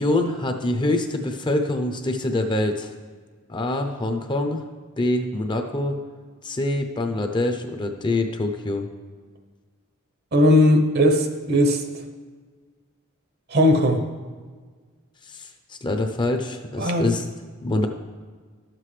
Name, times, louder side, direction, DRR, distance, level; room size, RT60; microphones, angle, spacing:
voice 1, 0.0-2.9 3.5-4.6 5.0-6.0 6.4-8.9 15.3-17.3 17.6-17.9, left 2 dB, 20° left, 5 dB, 0.6 m, -25 dB
voice 2, 10.3-11.8 13.5-14.0 16.8-17.1, left 1 dB, 50° right, 6 dB, 0.8 m, -18 dB
12.0 x 7.6 x 3.2 m, 1.5 s
head